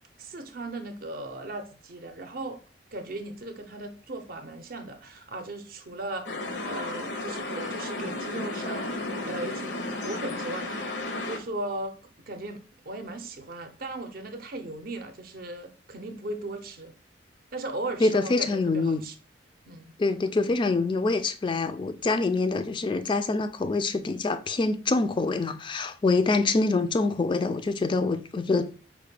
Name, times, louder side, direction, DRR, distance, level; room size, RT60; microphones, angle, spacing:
voice 1, 0.2-2.6 2.9-10.7 11.2-12.0 12.3-16.9 17.5-19.1 19.7-19.9, right 2 dB, 55° right, 0.5 m, -37 dB
sound 1, 6.3-11.4, left 2 dB, 75° left, 0.6 m, -33 dB
voice 2, 18.0-19.1 20.0-28.7, left 3 dB, 25° left, 0.3 m, -25 dB
4.7 x 2.1 x 3.3 m
head